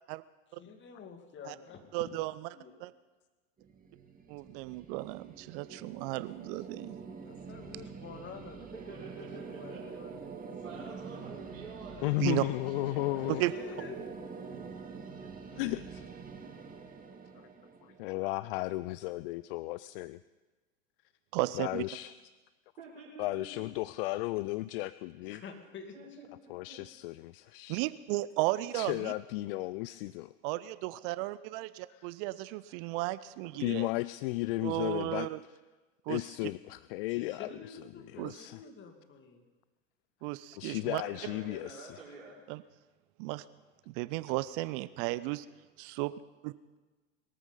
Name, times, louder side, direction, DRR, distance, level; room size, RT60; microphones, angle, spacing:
voice 1, 0.6-1.9 2.5-2.9 7.2-11.0 13.2-14.0 25.2-26.2 37.1-39.4, left 5 dB, 30° left, 5 dB, 2.4 m, -49 dB
voice 2, 1.9-2.3 2.8-2.9 4.3-7.0 12.2-12.4 13.4-13.5 21.3-21.8 27.7-29.1 30.4-33.9 34.6-35.4 36.1-36.2 38.2-38.3 40.2-41.0 42.5-42.6 43.2-43.4 43.9-45.5 45.8-46.1 46.4-46.5, right 19 dB, 45° right, 17 dB, 0.6 m, -34 dB
sound 1, 3.6-18.6, right 5 dB, 20° right, 2.1 m, -46 dB
voice 3, 8.7-9.8 10.6-14.1 22.8-23.7 25.9-26.8 30.5-30.6 41.0-42.4, right 4 dB, 75° right, -10 dB, 6.0 m, -48 dB
voice 4, 12.0-13.5 15.5-16.0 17.8-20.2 21.5-22.1 23.2-25.4 26.5-27.8 28.7-30.3 31.9-32.1 33.6-35.3 36.1-37.5 38.1-38.6 40.5-42.0, left 19 dB, 45° left, 17 dB, 0.4 m, -34 dB
22.5 x 13.5 x 4.1 m, 1.3 s
figure-of-eight pair, 90°, 39 cm